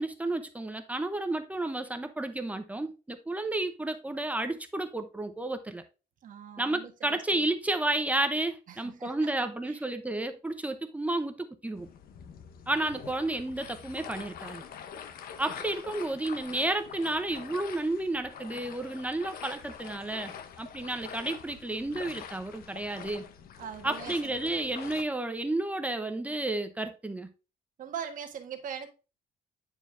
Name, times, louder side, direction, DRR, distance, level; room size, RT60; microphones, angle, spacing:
voice 1, 0.0-5.8 6.6-11.9 12.7-14.6 15.4-23.3 23.8-27.3, right 2 dB, 10° right, 0.7 m, -31 dB
voice 2, 6.2-7.5 8.7-9.3 9.7-9.8 23.6-24.3 27.8-28.9, right 8 dB, 55° right, 1.4 m, -41 dB
sound 1, 11.7-25.0, left 8 dB, 65° left, 0.9 m, -45 dB
9.3 x 4.5 x 2.6 m
cardioid pair, 145°, 16 cm